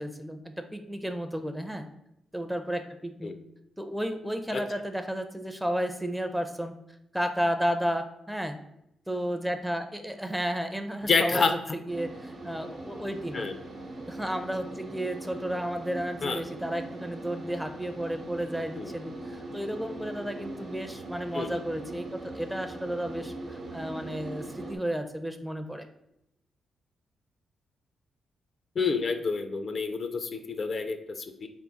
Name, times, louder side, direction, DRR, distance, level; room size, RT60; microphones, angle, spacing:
voice 1, 0.0-1.9 2.3-3.3 3.8-6.7 7.1-8.6 9.1-13.5 14.1-25.9, equal, 5° right, 7 dB, 0.5 m, -32 dB
voice 2, 11.1-11.5 13.3-13.5 16.2-16.4 18.8-18.9 21.3-21.5 28.8-31.5, left 4 dB, 50° left, 8 dB, 0.4 m, -28 dB
sound 1, 11.9-24.8, right 2 dB, 60° right, 0.9 m, -40 dB
3.5 x 2.7 x 4.0 m, 0.81 s
cardioid pair, 70°, 0 cm